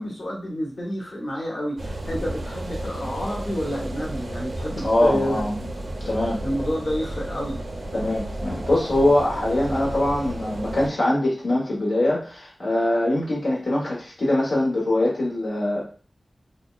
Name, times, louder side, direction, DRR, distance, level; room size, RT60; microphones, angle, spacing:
voice 1, 0.0-5.4 6.4-7.6, equal, 60° left, -2 dB, 1.2 m, -29 dB
sound 1, 1.8-10.9, right 1 dB, 85° right, 0.8 m, -32 dB
voice 2, 4.8-5.6 6.0-6.4 7.9-15.8, left 1 dB, 85° left, -4 dB, 1.1 m, -23 dB
5.1 x 2.3 x 2.3 m, 0.38 s
wide cardioid pair, 65°, 0 cm